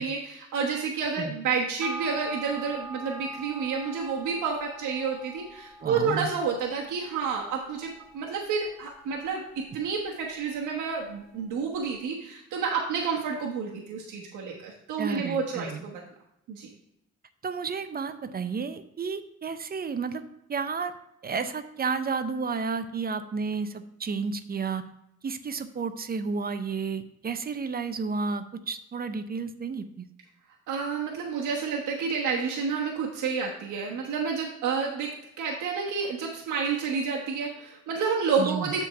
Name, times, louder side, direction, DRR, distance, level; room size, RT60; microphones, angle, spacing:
voice 1, 0.0-9.4 9.7-16.0 16.5-16.7 30.7-35.1 35.4-38.8, right 5 dB, 85° right, -2 dB, 1.2 m, -30 dB
sound 1, 1.8-10.6 10.9-11.0, right 1 dB, ahead, 1.5 m, -44 dB
voice 2, 5.8-6.3 15.0-15.8 17.4-20.2 20.5-20.9 21.2-24.8 25.2-30.1 38.4-38.7, right 5 dB, 30° right, 10 dB, 0.6 m, -31 dB
7.5 x 3.8 x 5.7 m, 0.82 s
cardioid pair, 90°, 30 cm